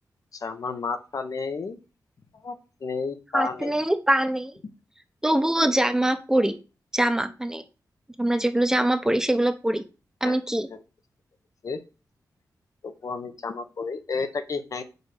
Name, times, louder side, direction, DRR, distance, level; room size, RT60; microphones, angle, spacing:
voice 1, 0.3-1.8 2.3-2.6 2.8-3.8 10.2-10.4 11.6-11.8 12.8-14.8, left 4 dB, 55° left, 8 dB, 1.0 m, -31 dB
voice 2, 3.3-4.5 5.2-6.5 6.9-7.6 8.2-9.8 10.2-10.7, right 1 dB, 10° right, 7 dB, 0.9 m, -23 dB
5.4 x 4.7 x 6.4 m, 0.32 s
wide cardioid pair, 105°, 7 cm